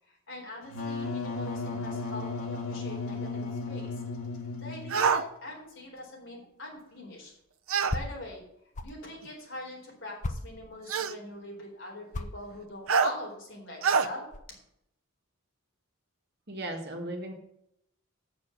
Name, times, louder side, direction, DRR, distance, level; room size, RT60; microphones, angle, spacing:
voice 1, 0.1-3.9 4.6-7.3 7.9-8.5 8.8-14.3, left 1 dB, 60° left, -2 dB, 4.0 m, -43 dB
Wind instrument woodwind instrument, 0.7-5.2, left 3 dB, 80° left, 2.1 m, -35 dB
sound 1, 4.9-5.2 7.7-8.0 9.2-9.3 10.9-11.2 12.9-13.1 13.8-14.1, right 6 dB, 75° right, 0.7 m, -25 dB
sound 2, 6.3-6.4 6.7-9.0 9.5-9.6 10.2-11.0 12.0-14.5, left 2 dB, 35° left, 0.6 m, -37 dB
voice 2, 16.5-17.3, right 1 dB, 50° right, 2 dB, 2.0 m, -36 dB
8.2 x 6.9 x 7.2 m, 0.75 s
head